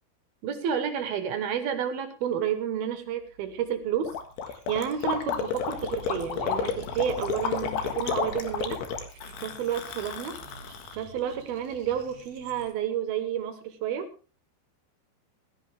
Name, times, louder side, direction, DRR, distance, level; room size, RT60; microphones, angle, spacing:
voice 1, 0.4-4.1 4.5-8.8 9.4-10.4 11.0-14.1, right 9 dB, 65° right, 9 dB, 2.7 m, -30 dB
sound 1, 2.9-10.4, right 9 dB, 10° left, 5.9 m, -49 dB
Gurgling, 4.0-10.9, left 7 dB, 70° left, 3.5 m, -31 dB
sound 2, 4.3-12.7, right 5 dB, 40° right, 3.3 m, -51 dB
15.5 x 14.5 x 3.4 m, 0.34 s
omnidirectional pair, 5.3 m